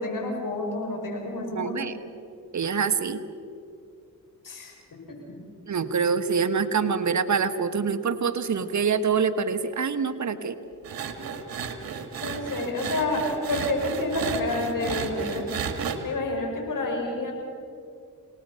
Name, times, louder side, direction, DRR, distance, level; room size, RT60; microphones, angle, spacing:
voice 1, 0.0-1.8 4.4-5.4 12.2-15.5 16.0-17.3, left 2 dB, 60° left, 1 dB, 6.2 m, -29 dB
voice 2, 1.5-1.9 2.5-3.2 5.7-10.6, right 6 dB, 50° right, 10 dB, 1.4 m, -25 dB
sound 1, 10.8-16.0, right 6 dB, 70° right, 1.9 m, -33 dB
27.5 x 19.0 x 5.7 m, 2.4 s
supercardioid pair, 50°, 36 cm